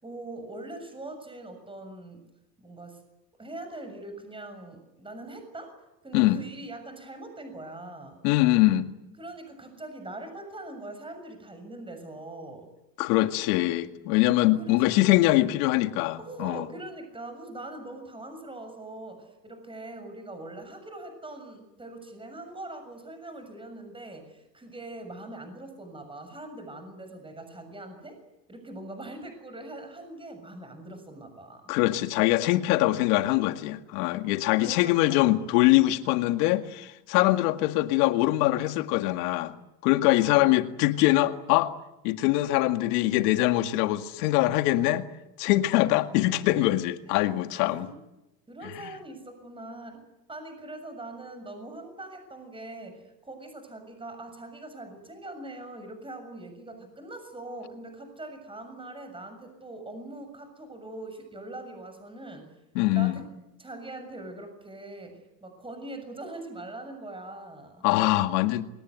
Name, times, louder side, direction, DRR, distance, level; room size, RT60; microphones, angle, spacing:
voice 1, 0.0-2.2 2.6-3.0 3.4-5.8 6.0-8.2 9.2-12.7 14.6-15.1 16.2-28.2 28.5-31.7 34.6-35.5 40.2-40.5 47.1-48.0 48.5-50.0 50.3-62.5 62.9-63.2 63.6-67.9, right 2 dB, 10° right, 6.8 m, -42 dB
voice 2, 8.2-8.9 13.0-16.7 31.7-39.5 39.8-41.7 42.0-45.1 45.4-47.9 62.8-63.1 67.8-68.6, left 17 dB, 65° left, 2.1 m, -23 dB
27.0 x 19.5 x 9.6 m
supercardioid pair, 115°, 50 cm